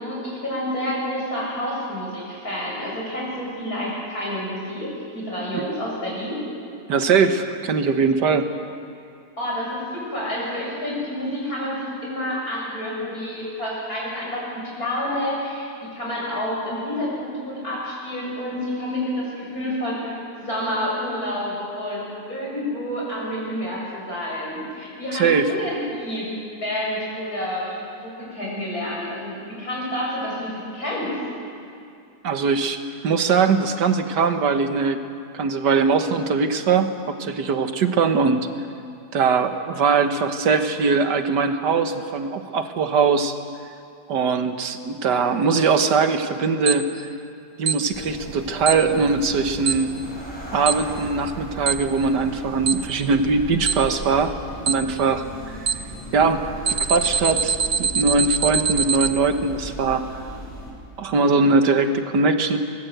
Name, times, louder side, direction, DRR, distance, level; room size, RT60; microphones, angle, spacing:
voice 1, 0.0-6.4 9.4-26.3 26.6-31.1, left 1 dB, 55° left, -5 dB, 8.5 m, -29 dB
voice 2, 6.9-8.5 25.1-25.5 32.2-32.8 33.0-35.0 35.3-38.5 39.1-43.4 44.1-46.9 47.6-49.9 50.5-54.3 54.7-55.3 56.1-56.4 56.9-60.0 61.0-62.6, right 4 dB, 75° right, 7 dB, 1.8 m, -21 dB
Alarm, 46.7-46.8 47.7-47.8 48.7-48.8 49.7-49.8 50.7-50.8 51.7-51.8 52.7-52.8 53.7-53.8 54.7-54.8 55.7-55.8 56.7-59.1, right 6 dB, 55° right, 1.0 m, -21 dB
sound 1, 47.9-60.7, equal, 15° left, 5.6 m, -36 dB
24.0 x 20.0 x 8.1 m, 2.4 s
omnidirectional pair, 1.8 m